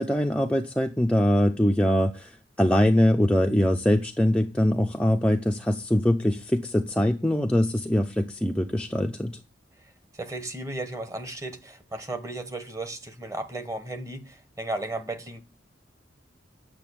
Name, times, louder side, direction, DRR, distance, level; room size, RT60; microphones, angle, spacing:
voice 1, 0.0-2.3 2.6-9.4, equal, 5° left, 0.6 m, -23 dB
voice 2, 9.8-15.4, right 2 dB, 15° right, 1.3 m, -35 dB
8.9 x 6.8 x 8.5 m
head